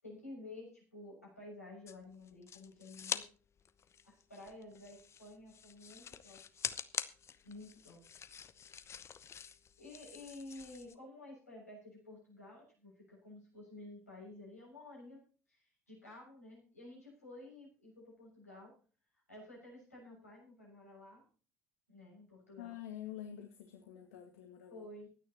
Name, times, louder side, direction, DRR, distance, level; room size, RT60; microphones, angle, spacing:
voice 1, 0.0-3.2 4.0-6.4 7.4-8.0 9.8-18.7 19.3-21.2 21.9-22.8 24.7-25.1, left 2 dB, 85° left, -2 dB, 6.9 m, -52 dB
sound 1, 1.9-3.3 3.6-10.9, left 7 dB, 35° left, 1.0 m, -45 dB
voice 2, 22.6-24.9, left 11 dB, 70° left, 4 dB, 1.9 m, -47 dB
24.5 x 9.7 x 3.0 m, 0.37 s
figure-of-eight pair, 60°, 8 cm